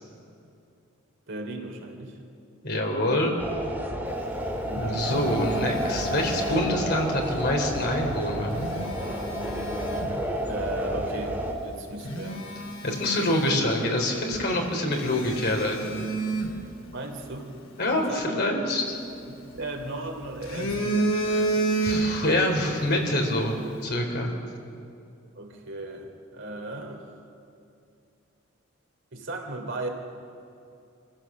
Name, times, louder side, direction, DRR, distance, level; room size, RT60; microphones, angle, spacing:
voice 1, 1.3-2.2 4.6-5.1 10.5-12.4 16.9-17.5 18.1-18.8 19.3-21.3 25.3-27.0 29.1-29.9, right 2 dB, 60° right, 2 dB, 3.1 m, -36 dB
voice 2, 2.6-3.3 4.8-8.6 12.8-16.0 17.8-19.0 21.1-21.5 21.8-24.4, left 1 dB, 55° left, 2 dB, 3.8 m, -26 dB
sound 1, 3.4-11.5, right 1 dB, 10° right, 2.4 m, -30 dB
Telephone, 4.5-7.1 8.3-10.2 10.8-11.0 11.6-11.7 12.0-14.1 14.3-14.5 15.0-17.3 18.9-19.9 20.2-22.4 22.7-22.9, right 2 dB, 80° left, 2.7 m, -30 dB
26.5 x 16.0 x 7.4 m, 2.6 s
head